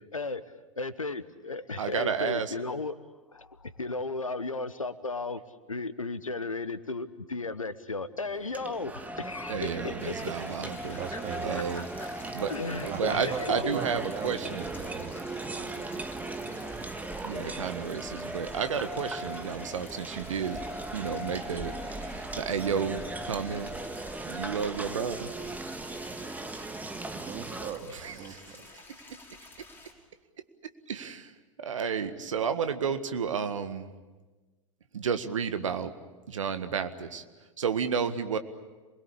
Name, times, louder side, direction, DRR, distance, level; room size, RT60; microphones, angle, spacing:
voice 1, 0.8-3.0 3.3-5.4 5.7-10.1 10.9-11.2 11.7-12.1 12.5-13.7, left 3 dB, 90° left, 14 dB, 1.2 m, -35 dB
voice 2, 1.8-2.5 9.5-11.0 11.4-11.9 12.3-12.5 12.8-14.6 17.2-20.6 20.9-23.7 24.3-25.3 27.9-28.4 30.9-31.3 31.6-33.9 34.9-35.9 36.3-37.2 37.6-38.4, right 6 dB, 75° right, 10 dB, 1.7 m, -31 dB
sound 1, 8.3-27.7, right 2 dB, 10° right, 1.6 m, -38 dB
sound 2, 10.0-29.9, left 3 dB, 10° left, 5.7 m, -51 dB
voice 3, 11.0-11.7 12.9-15.9 27.1-28.6, right 7 dB, 35° right, 5 dB, 2.7 m, -39 dB
27.5 x 21.5 x 8.6 m, 1.2 s
figure-of-eight pair, 95°, 17 cm